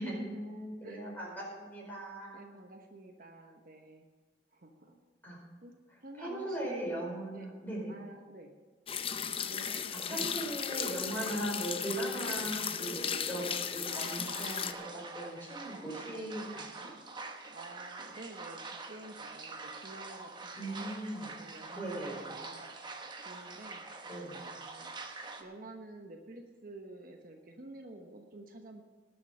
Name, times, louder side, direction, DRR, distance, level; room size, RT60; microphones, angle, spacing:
voice 1, 0.0-2.4 4.9-5.0 5.2-5.4 6.2-7.9 10.0-16.9 20.5-21.4 21.7-22.3 24.1-24.4, right 1 dB, 10° left, -4 dB, 4.9 m, -39 dB
voice 2, 0.8-1.1 2.3-4.1 4.5-4.9 5.6-5.8 6.0-6.9 7.3-7.5 7.9-8.5 9.4-10.3 11.1-11.5 12.1-12.4 17.5-21.0 21.4-22.8 23.2-23.8 24.4-28.8, right 2 dB, 50° right, 3 dB, 1.1 m, -49 dB
sound 1, 8.9-14.7, left 7 dB, 30° left, 0.6 m, -36 dB
sound 2, 13.9-25.4, right 3 dB, 25° right, 1.0 m, -45 dB
19.0 x 7.0 x 5.6 m, 1.4 s
head